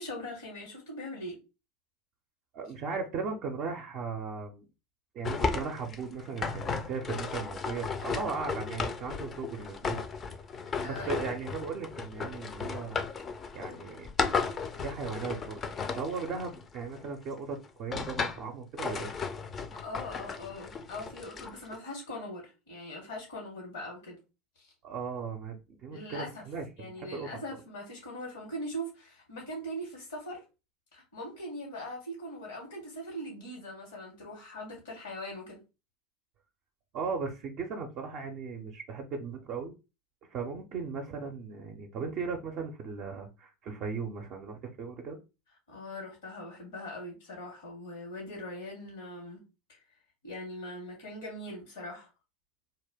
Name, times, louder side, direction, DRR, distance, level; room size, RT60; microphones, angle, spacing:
voice 1, 0.0-1.4 10.8-11.2 13.6-13.9 19.7-24.2 24.6-24.7 25.9-26.4 26.8-30.4 30.9-35.6 45.7-49.4 49.7-49.8 50.2-52.1, equal, 80° left, -1 dB, 1.0 m, -41 dB
voice 2, 2.5-4.6 5.1-10.0 10.8-13.0 13.5-14.1 14.7-15.6 15.9-19.1 24.8-27.3 36.9-39.7 40.3-45.2, right 5 dB, 50° right, 2 dB, 0.4 m, -37 dB
sound 1, 5.2-17.1 17.6-18.5 18.8-21.8, left 5 dB, 30° left, 0.4 m, -35 dB
2.2 x 2.1 x 3.4 m, 0.29 s
hypercardioid pair, 85°, 0 cm